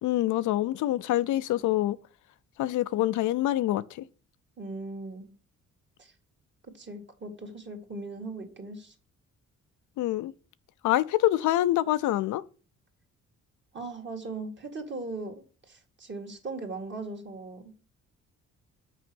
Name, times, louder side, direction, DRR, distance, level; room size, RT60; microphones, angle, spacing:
voice 1, 0.0-2.0 2.6-4.1 10.0-10.3 10.8-12.4, left 14 dB, 75° left, 0.5 m, -26 dB
voice 2, 4.6-5.3 6.0-6.1 6.7-8.9 13.7-17.7, right 3 dB, 35° right, 2.0 m, -39 dB
6.1 x 5.0 x 6.2 m
cardioid pair, 90°, 30 cm